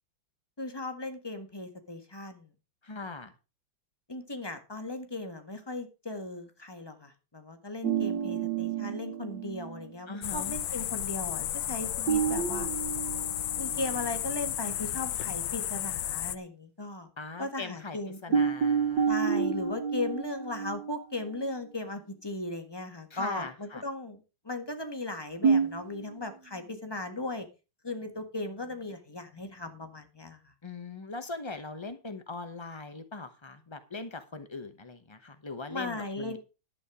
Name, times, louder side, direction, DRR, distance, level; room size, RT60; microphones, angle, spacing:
voice 1, 0.6-2.5 4.1-12.7 13.6-17.1 17.4-18.5 19.1-27.5 27.8-30.5 35.7-36.4, left 2 dB, 15° left, 6 dB, 1.5 m, -37 dB
voice 2, 2.8-3.3 10.1-10.5 17.2-18.0 18.2-19.1 23.1-23.8 30.6-36.4, left 3 dB, 40° left, 8 dB, 0.4 m, -40 dB
sound 1, 7.8-9.9 12.1-14.2 14.6-14.7 18.3-21.5 25.4-26.2, right 6 dB, 65° right, 1.9 m, -29 dB
sound 2, 10.2-16.4, left 12 dB, 70° left, 1.4 m, -33 dB
11.5 x 8.7 x 4.9 m, 0.30 s
omnidirectional pair, 2.2 m